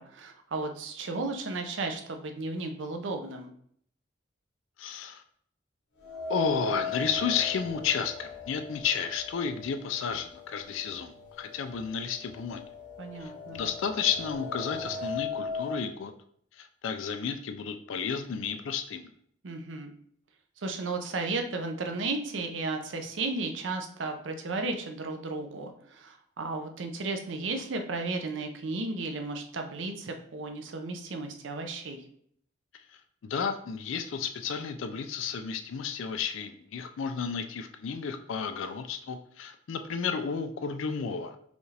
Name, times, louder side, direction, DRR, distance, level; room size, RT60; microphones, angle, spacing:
voice 1, 0.0-3.5 13.0-13.6 19.4-19.9 20.6-32.0, right 3 dB, 75° right, 5 dB, 0.6 m, -34 dB
voice 2, 4.8-5.2 6.3-12.6 13.2-16.1 16.6-19.1 33.2-41.4, left 6 dB, 80° left, 8 dB, 0.4 m, -32 dB
sound 1, 6.0-10.1 10.4-10.5 11.5-11.6 12.0-15.8, left 4 dB, 65° left, 1.0 m, -37 dB
5.1 x 2.5 x 3.2 m, 0.64 s
head